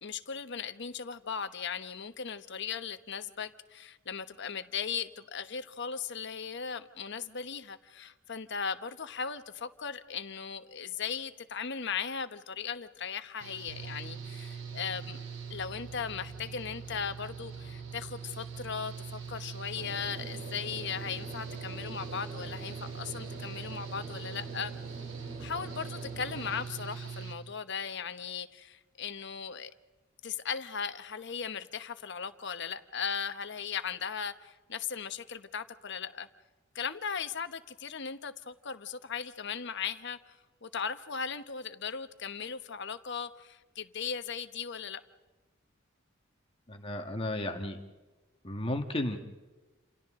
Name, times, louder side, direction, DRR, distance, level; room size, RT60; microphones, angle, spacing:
voice 1, 0.0-15.2 15.5-24.7 25.4-29.7 30.2-36.3 36.7-40.2 40.6-45.0, left 6 dB, 60° left, 10 dB, 1.2 m, -37 dB
Engine / Mechanical fan, 13.4-27.3, right 6 dB, 85° right, 3.9 m, -42 dB
sound 1, 19.7-26.6, right 2 dB, 45° right, 3.5 m, -46 dB
voice 2, 46.7-47.8 48.4-49.2, left 1 dB, 30° left, 4 dB, 1.8 m, -33 dB
29.0 x 28.5 x 3.8 m, 1.2 s
head